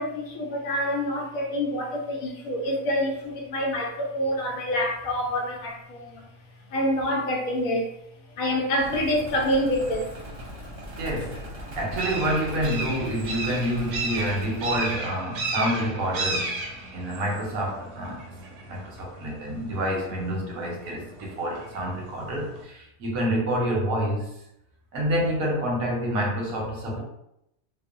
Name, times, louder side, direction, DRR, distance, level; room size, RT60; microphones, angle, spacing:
voice 1, 0.0-6.2 6.7-7.9 8.4-10.1, equal, 80° left, 1.0 m, -27 dB
sound 1, 8.8-14.9, equal, 35° right, 0.7 m, -40 dB
sound 2, 8.9-22.6, right 2 dB, 70° right, 0.9 m, -36 dB
voice 2, 11.0-11.4 11.8-16.6 16.9-18.2 18.7-24.3 24.9-27.0, equal, 90° right, 1.2 m, -28 dB
2.9 x 2.0 x 2.4 m
omnidirectional pair, 1.4 m